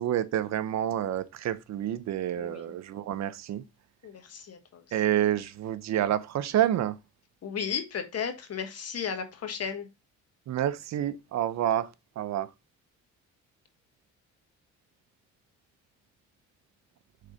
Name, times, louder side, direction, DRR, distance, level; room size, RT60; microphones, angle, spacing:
voice 1, 0.0-3.6 4.9-6.9 10.5-11.9 12.2-12.5, right 11 dB, 65° right, 0.6 m, -28 dB
voice 2, 2.4-2.7 4.0-5.0 7.4-9.9, left 7 dB, 55° left, 1.5 m, -35 dB
6.5 x 3.8 x 4.0 m
cardioid pair, 90°, 30 cm